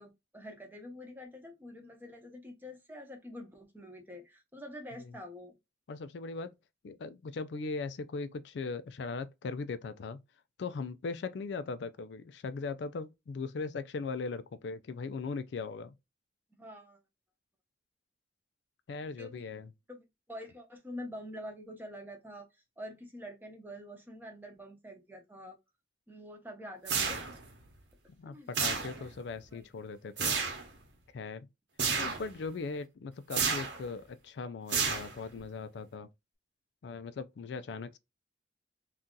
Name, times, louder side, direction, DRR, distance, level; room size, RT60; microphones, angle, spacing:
voice 1, 0.0-5.5 16.6-17.0 19.2-19.5 19.9-20.0 20.3-22.5 22.8-25.6 26.1-27.3 28.3-28.5 28.8-28.9 29.5-29.7, equal, 10° right, 0.7 m, -46 dB
voice 2, 5.9-6.5 6.8-10.2 10.6-15.9 18.9-19.7 28.2-30.4 31.1-31.5 32.0-36.1 36.8-38.0, left 4 dB, 75° left, 0.4 m, -39 dB
sound 1, 26.9-27.5 28.5-29.2 30.2-30.7 31.8-32.3 33.3-33.8 34.7-35.4, right 5 dB, 75° right, 1.0 m, -31 dB
2.7 x 2.4 x 3.7 m
head